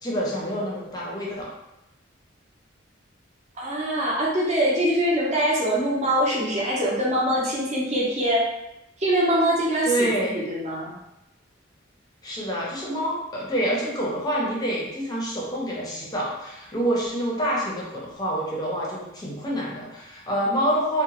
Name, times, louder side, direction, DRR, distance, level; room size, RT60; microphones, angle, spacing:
voice 1, 0.0-1.5 9.8-10.4 12.2-21.0, right 1 dB, 20° left, -4 dB, 0.6 m, -27 dB
voice 2, 3.6-8.4 9.0-11.0, equal, 35° right, -4 dB, 0.7 m, -23 dB
2.9 x 2.1 x 2.9 m, 0.90 s
head